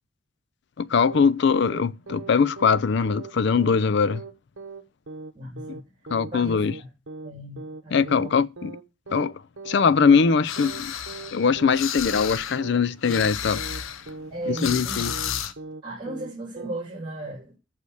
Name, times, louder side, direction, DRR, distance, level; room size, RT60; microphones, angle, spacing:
voice 1, 0.8-4.2 6.1-6.7 7.9-8.7 9.1-9.3 9.6-10.9 11.3-13.6 14.5-15.1, left 5 dB, 55° left, 0.4 m, -21 dB
sound 1, 1.1-1.3 1.6-2.3 2.6-2.8 3.1-3.3 3.6-3.8 4.1-4.3 4.6-4.8 5.1-5.3 5.6-5.8 6.1-6.3 6.6-6.8 7.1-7.3 7.6-7.8 8.1-8.3 8.6-8.8 9.1-9.3 9.6-9.8 10.1-10.3 10.6-10.8 11.1-11.3 11.6-11.8 12.1-12.3 12.6-12.8 13.1-13.3 13.6-13.8 14.1-14.3 14.6-14.8 15.1-15.3 15.6-16.3 16.6-16.8, right 3 dB, 70° right, 1.0 m, -39 dB
voice 2, 5.3-5.9 6.3-6.9 7.2-8.3 14.3-15.0 15.8-17.5, right 2 dB, 25° right, 3.3 m, -36 dB
sound 2, 10.4-12.6 12.9-15.5, left 8 dB, 80° left, 0.8 m, -32 dB
8.3 x 6.6 x 6.4 m
head